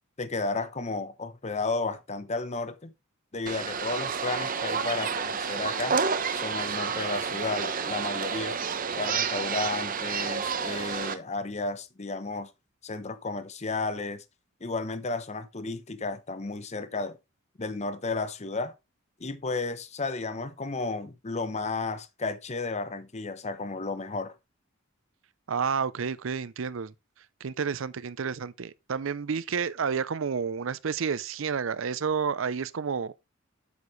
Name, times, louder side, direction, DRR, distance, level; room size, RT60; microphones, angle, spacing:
voice 1, 0.2-2.9 3.3-6.0 6.3-8.5 9.0-12.5 12.8-14.2 14.6-17.2 17.6-18.7 19.2-24.3, left 3 dB, 35° left, 0.8 m, -33 dB
sound 1, 3.5-11.2, right 6 dB, 40° right, 0.9 m, -30 dB
voice 2, 25.5-26.9 27.4-33.1, right 6 dB, 70° right, 0.5 m, -30 dB
8.2 x 7.2 x 3.1 m
head